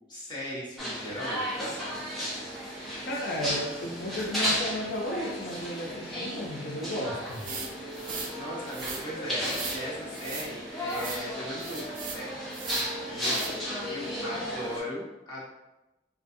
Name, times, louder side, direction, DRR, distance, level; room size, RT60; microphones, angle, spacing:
voice 1, 0.1-1.4 7.9-8.1 8.3-13.6 13.9-15.5, equal, 25° left, -8 dB, 0.9 m, -38 dB
sound 1, 0.8-14.8, equal, ahead, 0.6 m, -34 dB
voice 2, 3.1-7.5, equal, 60° left, -2 dB, 0.6 m, -34 dB
Wind instrument woodwind instrument, 6.8-10.4 10.8-14.4, right 1 dB, 30° right, 0.9 m, -46 dB
sound 2, 7.3-8.3 8.7-9.0 9.4-9.8 10.1-10.5 10.9-11.2 11.6-12.2 12.5-12.9 13.2-13.5, right 4 dB, 50° right, 0.4 m, -38 dB
2.4 x 2.3 x 2.6 m, 0.99 s
head